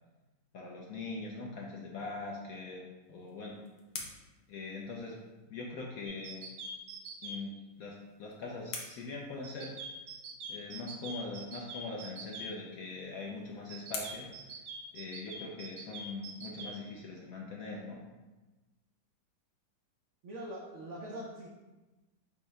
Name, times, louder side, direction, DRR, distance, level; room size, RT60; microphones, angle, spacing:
voice 1, 0.5-2.8 3.1-3.5 4.5-5.2 5.5-6.4 7.2-7.5 7.8-9.8 10.5-14.6 14.9-18.0, left 3 dB, 70° left, -2 dB, 0.8 m, -42 dB
sound 1, 3.0-5.5 7.6-10.1 12.3-15.4, left 4 dB, 90° left, 1.5 m, -48 dB
sound 2, 6.1-7.4 9.4-12.5 13.7-16.7, right 2 dB, 70° right, 1.1 m, -44 dB
voice 2, 20.2-21.5, right 1 dB, 90° right, -3 dB, 0.6 m, -42 dB
5.4 x 2.1 x 4.6 m, 1.1 s
omnidirectional pair, 2.0 m